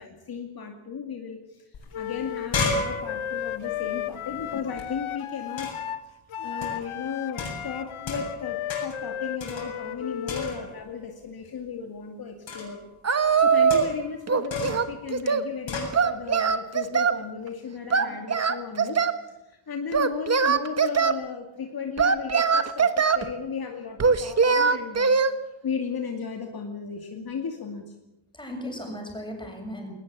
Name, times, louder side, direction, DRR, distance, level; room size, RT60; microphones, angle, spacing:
voice 1, 0.0-1.6 1.9-5.7 6.4-12.8 13.4-25.1 25.6-27.9, left 6 dB, 50° left, 3 dB, 2.5 m, -35 dB
sound 1, 1.7-1.8 2.1-4.8 5.6-6.0 6.6-6.9 7.4-8.4 8.7-9.1 9.4-10.0 10.3-10.9 12.5-12.8 13.7-14.1 14.5-14.9 15.7-16.0, left 3 dB, 65° left, 8.0 m, -33 dB
Wind instrument woodwind instrument, 1.9-10.5, left 10 dB, 90° left, 1.2 m, -34 dB
Singing, 13.0-14.0 14.3-15.5 15.9-17.2 17.9-19.2 19.9-21.2 22.0-23.3 24.0-25.3, right 5 dB, 30° right, 1.4 m, -22 dB
voice 2, 28.3-29.9, equal, 10° left, 2 dB, 7.1 m, -37 dB
21.0 x 20.0 x 8.7 m, 0.90 s
wide cardioid pair, 145°, 48 cm